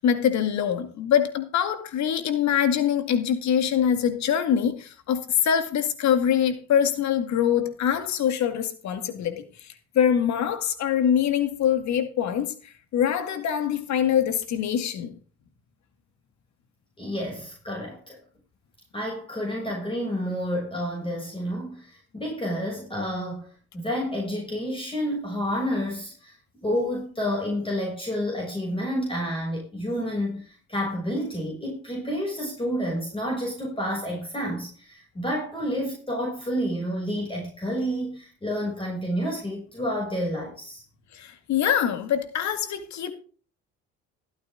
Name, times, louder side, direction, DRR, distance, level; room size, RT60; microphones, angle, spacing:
voice 1, 0.0-9.4 9.9-12.5 12.9-15.2 41.1-43.1, left 9 dB, 65° left, 2.2 m, -24 dB
voice 2, 17.0-18.2 18.9-26.4 26.6-40.8, equal, 15° left, 7.1 m, -29 dB
16.5 x 8.9 x 3.8 m
supercardioid pair, 75°, 30 cm